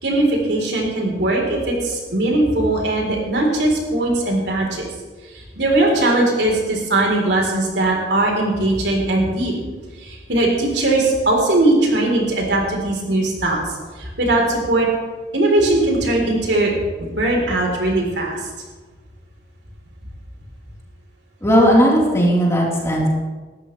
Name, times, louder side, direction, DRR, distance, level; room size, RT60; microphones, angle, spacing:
voice 1, 0.0-4.9 5.6-9.5 10.0-13.6 14.0-14.9 15.3-16.7 17.0-18.4, right 2 dB, 90° right, -1 dB, 4.1 m, -19 dB
voice 2, 21.4-23.1, equal, 15° left, -5 dB, 4.1 m, -16 dB
19.0 x 14.0 x 3.4 m, 1.3 s
head